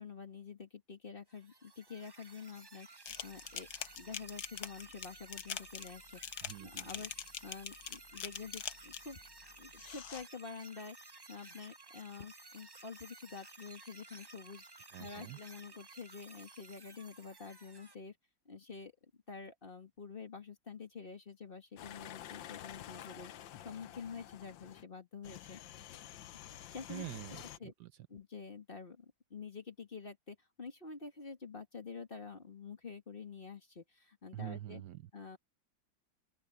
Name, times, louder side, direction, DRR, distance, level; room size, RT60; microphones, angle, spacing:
voice 1, 0.0-3.7 4.0-9.2 9.6-11.0 11.3-14.7 15.0-18.2 18.5-18.9 19.3-25.6 26.5-27.1 27.6-27.7 28.1-34.8 35.1-35.4, left 5 dB, 30° left, 1.9 m, -48 dB
sound 1, 1.3-17.9, right 3 dB, 35° right, 0.4 m, -55 dB
sound 2, 3.1-9.2 9.7-10.2, left 9 dB, 60° left, 1.4 m, -43 dB
voice 2, 6.4-7.0 14.9-15.4 26.9-28.1 34.3-35.1, right 14 dB, 70° right, 1.3 m, -46 dB
sound 3, 21.8-24.8 25.2-27.6, left 12 dB, 85° left, 1.5 m, -50 dB
open air
omnidirectional pair, 2.0 m